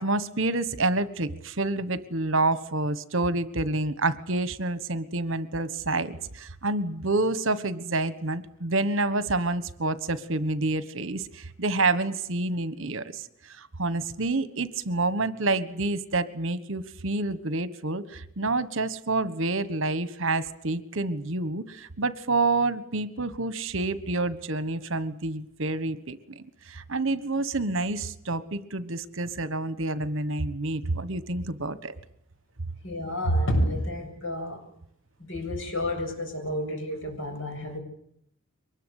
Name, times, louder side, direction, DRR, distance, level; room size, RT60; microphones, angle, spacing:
voice 1, 0.0-31.9 33.3-33.5, right 2 dB, 65° right, 14 dB, 1.4 m, -28 dB
voice 2, 32.8-34.6 35.2-37.8, equal, 60° left, 4 dB, 7.5 m, -29 dB
23.5 x 20.5 x 8.3 m, 0.70 s
head